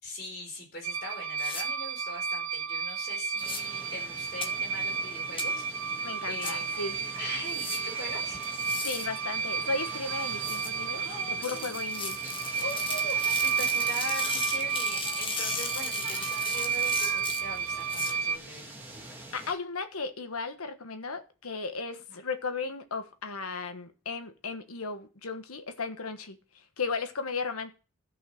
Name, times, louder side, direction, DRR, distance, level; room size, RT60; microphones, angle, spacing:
voice 1, 0.0-6.0 6.3-6.7 7.2-8.4 10.9-11.7 12.6-18.8 22.1-22.2, left 1 dB, 45° left, 4.5 m, -42 dB
sound 1, 0.8-18.4, right 6 dB, 70° right, 0.7 m, -32 dB
sound 2, 1.4-1.6 3.4-3.6 4.4-4.5 5.4-5.5 6.4-6.5 7.4-7.8 8.4-9.1 10.4-10.7 11.4-18.1, left 4 dB, 25° left, 1.2 m, -36 dB
sound 3, 3.4-19.5, right 2 dB, 10° right, 2.2 m, -45 dB
voice 2, 6.0-6.9 8.8-12.2 19.3-27.7, left 4 dB, 85° left, 1.3 m, -35 dB
13.5 x 5.5 x 6.3 m
head